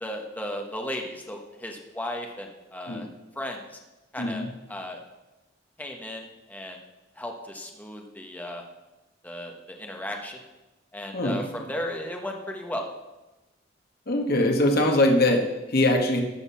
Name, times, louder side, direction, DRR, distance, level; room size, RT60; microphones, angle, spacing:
voice 1, 0.0-3.1 3.3-3.8 4.1-5.0 5.8-6.8 7.2-8.6 9.2-10.4 10.9-12.9, left 1 dB, 10° left, 2 dB, 1.2 m, -35 dB
voice 2, 4.2-4.5 11.1-11.4 14.1-16.2, left 1 dB, 55° left, 2 dB, 1.4 m, -22 dB
13.5 x 6.7 x 5.7 m, 1.0 s
head